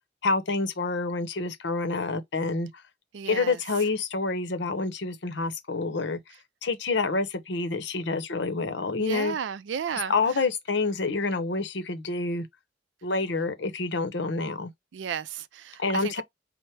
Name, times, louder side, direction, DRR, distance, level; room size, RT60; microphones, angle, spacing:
voice 1, 0.2-2.7 3.3-6.2 6.6-9.4 10.1-12.5 13.0-14.7 15.8-16.2, left 3 dB, 70° left, 0.7 m, -28 dB
voice 2, 3.1-3.6 9.0-10.1 14.9-16.2, right 7 dB, 75° right, 0.4 m, -33 dB
4.4 x 2.1 x 3.2 m
head